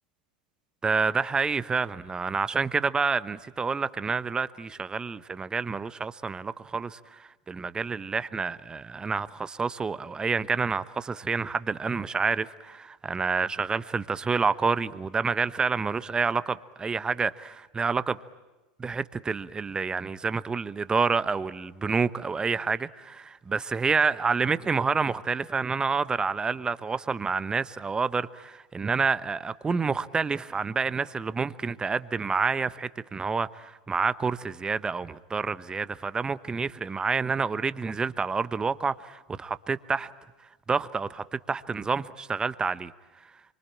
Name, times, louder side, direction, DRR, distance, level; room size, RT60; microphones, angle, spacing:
voice 1, 0.8-18.2 18.8-40.1 40.7-42.9, right 5 dB, 15° right, 1.0 m, -28 dB
26.5 x 25.0 x 8.7 m
hypercardioid pair, 90°, 5 cm